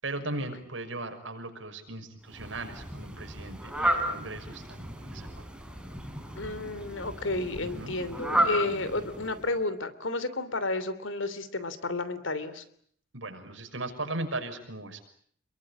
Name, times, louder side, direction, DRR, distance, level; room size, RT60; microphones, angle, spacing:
voice 1, 0.0-5.3 7.6-7.9 13.1-15.0, right 2 dB, 75° right, 5 dB, 6.0 m, -37 dB
Fowl, 2.3-9.6, right 1 dB, 5° right, 4.5 m, -33 dB
voice 2, 6.4-12.6, left 2 dB, 80° left, 14 dB, 3.0 m, -32 dB
28.5 x 22.5 x 8.6 m, 0.63 s
head